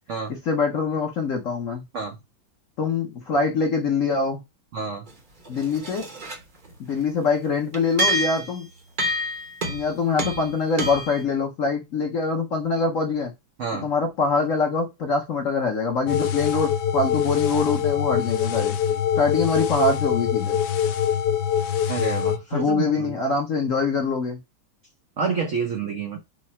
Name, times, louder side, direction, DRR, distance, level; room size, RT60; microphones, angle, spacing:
voice 1, 0.3-1.8 2.8-4.4 5.5-6.1 6.8-8.7 9.7-13.3 13.8-18.8 19.2-20.6 22.5-24.4, left 4 dB, 55° left, 0.9 m, -24 dB
voice 2, 4.7-5.1 13.6-13.9 17.8-17.9 18.9-19.0 21.9-23.1 25.2-26.2, right 5 dB, 90° right, 0.6 m, -28 dB
sound 1, 5.1-5.2 5.5-6.4 6.7-6.8 7.7-8.6 9.0-9.9 10.2-10.5 10.8-11.2, equal, 45° right, 0.6 m, -27 dB
sound 2, 16.1-22.4, left 9 dB, 90° left, 0.8 m, -24 dB
4.7 x 2.1 x 4.2 m
omnidirectional pair, 2.2 m